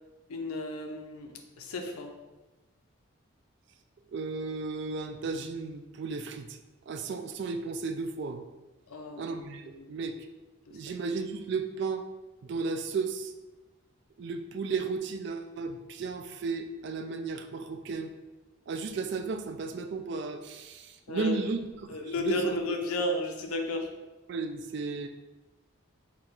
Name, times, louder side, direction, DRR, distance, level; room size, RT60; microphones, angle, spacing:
voice 1, 0.3-2.1 8.9-9.4 9.6-9.9 10.7-10.8 21.1-21.4 21.9-23.9, left 1 dB, 90° left, 4 dB, 0.6 m, -33 dB
voice 2, 4.1-6.6 6.9-8.4 9.2-10.3 10.7-12.0 12.4-13.3 14.2-18.1 18.7-22.6 24.3-25.1, right 4 dB, 55° right, 7 dB, 0.3 m, -34 dB
4.3 x 2.4 x 3.9 m, 1.1 s
head